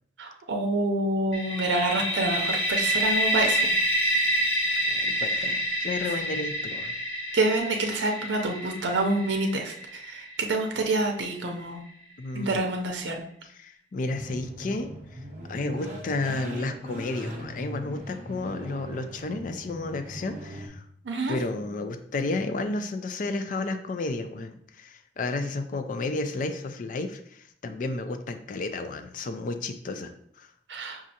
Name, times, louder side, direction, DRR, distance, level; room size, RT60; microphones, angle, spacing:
voice 1, 0.2-3.7 7.3-11.8 12.3-13.2 21.0-21.4 30.7-31.0, right 2 dB, 85° right, 2 dB, 0.6 m, -27 dB
sound 1, 1.3-11.0, right 1 dB, 65° left, 1.2 m, -28 dB
voice 2, 4.9-6.9 12.2-12.6 13.4-15.2 15.5-20.8 21.3-30.5, left 3 dB, 45° left, 8 dB, 0.4 m, -32 dB
sound 2, 14.1-20.7, right 1 dB, 45° right, 0.7 m, -40 dB
6.2 x 2.4 x 2.7 m, 0.69 s
head